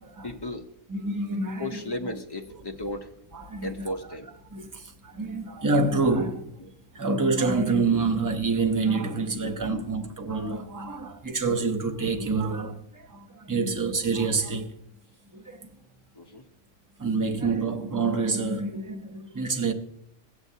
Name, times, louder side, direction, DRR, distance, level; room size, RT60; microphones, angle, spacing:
voice 1, 0.2-0.6 1.6-3.1 3.6-4.3 9.4-9.9 16.1-16.4 17.3-17.4, left 1 dB, 25° left, 0.6 m, -35 dB
voice 2, 0.9-1.9 3.3-3.7 4.5-14.8 15.3-15.7 17.0-19.7, right 3 dB, 20° right, 0.5 m, -27 dB
16.0 x 8.5 x 2.7 m
omnidirectional pair, 1.3 m